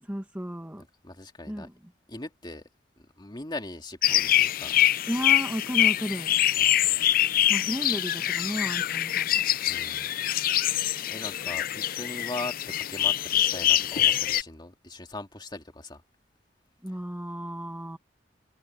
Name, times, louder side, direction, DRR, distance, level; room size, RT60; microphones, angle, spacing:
voice 1, 0.0-0.8 1.5-1.7 5.1-6.3 7.5-9.4 16.8-18.0, equal, 10° right, 1.5 m, -33 dB
voice 2, 1.0-1.7 2.1-2.6 3.0-4.7 6.6-6.7 9.7-10.1 11.1-16.0, left 2 dB, 25° left, 2.0 m, -40 dB
sound 1, 4.0-14.4, left 12 dB, 55° left, 0.5 m, -24 dB
head